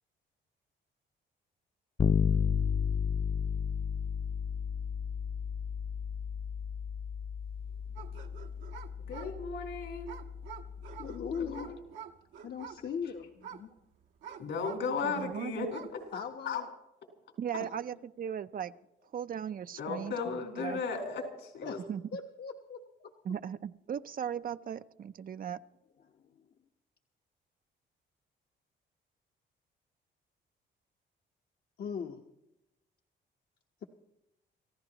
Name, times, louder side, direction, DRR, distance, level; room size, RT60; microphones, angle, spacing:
Bass guitar, 2.0-11.7, left 7 dB, 25° left, 0.5 m, -33 dB
sound 1, 8.0-15.4 15.6-16.1, right 8 dB, 80° right, 1.3 m, -48 dB
voice 1, 9.1-10.1 11.4-11.7 14.4-16.0 16.4-16.6 19.8-21.8, left 5 dB, 75° left, 2 dB, 4.3 m, -35 dB
voice 2, 11.0-11.7 12.4-13.7 16.1-16.7 17.6-17.7 21.6-21.9 22.1-23.1 26.0-26.5 31.8-32.2, left 6 dB, 55° left, 2 dB, 1.2 m, -39 dB
voice 3, 15.0-15.7 17.4-18.7 19.1-20.8 21.9-22.0 23.2-25.6, right 8 dB, 45° right, 12 dB, 0.6 m, -37 dB
28.5 x 15.0 x 3.0 m, 0.89 s
cardioid pair, 90°, 20 cm